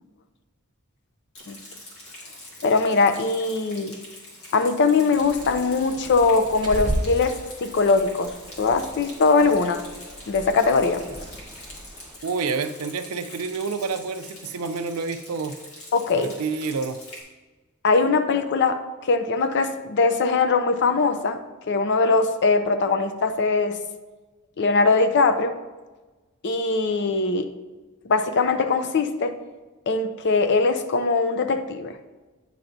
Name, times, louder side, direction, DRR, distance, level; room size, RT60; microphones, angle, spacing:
Rain, 1.3-17.2, left 1 dB, 75° left, 1.8 m, -44 dB
voice 1, 2.6-4.0 4.5-9.8 10.3-11.0 15.9-16.4 17.8-21.4 21.7-23.8 24.6-25.6 26.4-27.5 28.0-29.3 29.9-32.0, left 4 dB, 55° left, 10 dB, 0.5 m, -21 dB
Bird, 5.1-12.2, equal, 20° right, 1.1 m, -35 dB
voice 2, 12.2-15.6 16.1-17.0, right 4 dB, 85° right, 10 dB, 0.4 m, -28 dB
9.1 x 5.6 x 2.6 m, 1.2 s
head